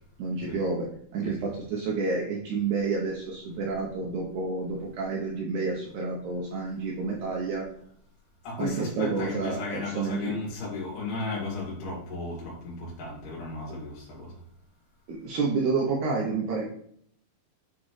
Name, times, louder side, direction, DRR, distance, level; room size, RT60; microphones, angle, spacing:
voice 1, 0.2-0.9 1.1-7.7 8.6-10.4 13.7-13.8 15.1-16.6, right 4 dB, 85° right, -1 dB, 1.7 m, -29 dB
voice 2, 8.4-14.3, left 3 dB, 90° left, -4 dB, 4.2 m, -34 dB
8.3 x 4.2 x 3.1 m, 0.67 s
omnidirectional pair, 4.4 m